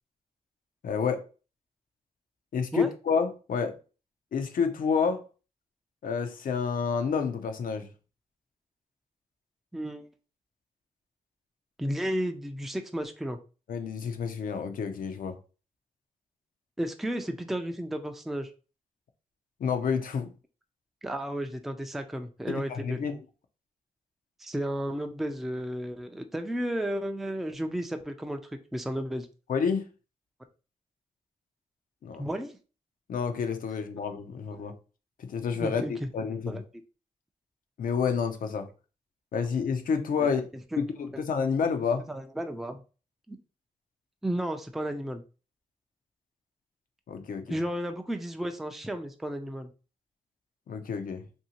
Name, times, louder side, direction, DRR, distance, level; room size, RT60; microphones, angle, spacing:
voice 1, 0.8-1.2 2.5-3.8 4.3-5.2 6.0-7.9 13.7-15.4 19.6-20.3 22.5-23.1 29.5-29.9 32.0-32.3 33.1-34.7 35.2-36.6 37.8-38.7 39.3-40.4 40.8-42.0 47.1-47.6 50.7-51.2, left 6 dB, 70° left, 0.5 m, -29 dB
voice 2, 9.7-10.1 11.8-13.4 16.8-18.5 21.0-23.0 24.4-29.3 32.2-32.6 34.6-34.8 35.6-36.1 36.5-36.6 40.2-40.3 40.7-40.8 41.1-41.2 42.1-42.8 43.3-43.4 44.2-45.2 47.5-49.7, right 1 dB, ahead, 0.4 m, -33 dB
2.7 x 2.7 x 2.8 m
cardioid pair, 65°, 15 cm